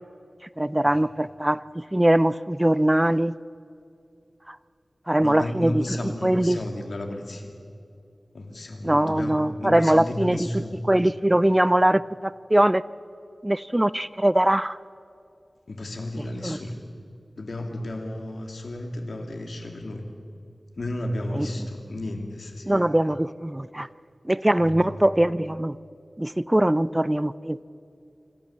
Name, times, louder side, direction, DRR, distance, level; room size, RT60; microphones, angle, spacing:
voice 1, 0.6-3.3 4.5-4.6 5.1-6.6 8.8-12.8 13.4-14.8 16.4-16.6 21.3-21.5 22.7-23.9 24.2-25.8 26.2-27.6, right 1 dB, 15° right, 17 dB, 0.4 m, -22 dB
voice 2, 5.2-7.5 8.3-9.3 9.6-10.8 15.7-16.8 17.4-20.1 20.8-22.8 24.6-24.9, left 1 dB, 80° left, 3 dB, 2.5 m, -33 dB
26.0 x 13.5 x 7.3 m, 2.5 s
wide cardioid pair, 70°, 0 cm